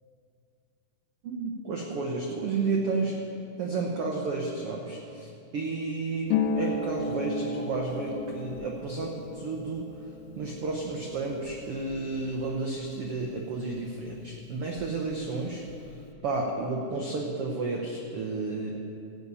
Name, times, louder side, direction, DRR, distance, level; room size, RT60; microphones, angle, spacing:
voice 1, 1.2-3.1 3.6-9.9 10.4-15.6 16.2-18.7, right 3 dB, 90° right, -1 dB, 1.2 m, -32 dB
Harp, 6.3-13.8 14.0-15.1 15.4-16.1, left 4 dB, 85° left, 2.5 m, -35 dB
14.5 x 8.4 x 5.5 m, 2.5 s
omnidirectional pair, 4.0 m